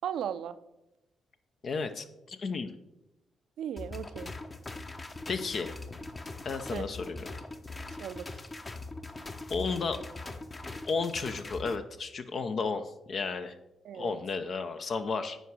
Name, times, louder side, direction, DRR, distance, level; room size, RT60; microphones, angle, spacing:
voice 1, 0.0-0.6 3.6-4.3 6.7-6.9 8.0-8.3 13.8-14.2, right 9 dB, 70° right, 14 dB, 0.5 m, -36 dB
voice 2, 1.6-2.7 5.3-5.8 6.4-7.2 9.5-10.0 10.9-13.6 13.9-15.4, left 4 dB, 55° left, 8 dB, 0.7 m, -33 dB
sound 1, 3.8-11.8, left 2 dB, 35° left, 1.0 m, -41 dB
9.2 x 5.0 x 6.3 m, 0.94 s
hypercardioid pair, 40°, 0 cm